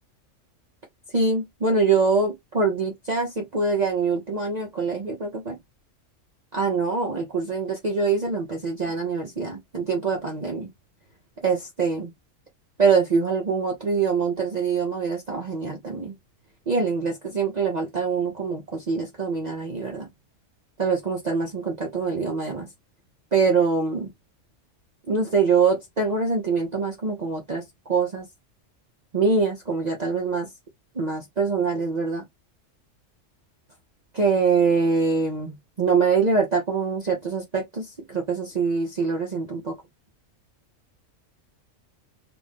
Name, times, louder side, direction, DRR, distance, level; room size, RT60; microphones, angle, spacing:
voice 1, 1.1-5.6 6.5-10.7 11.4-12.1 12.8-16.1 16.7-20.1 20.8-22.7 23.3-24.1 25.1-27.6 27.9-28.2 29.1-30.5 30.9-32.2 34.1-39.7, right 4 dB, 40° right, 0.8 m, -24 dB
3.1 x 2.6 x 3.5 m
omnidirectional pair, 1.3 m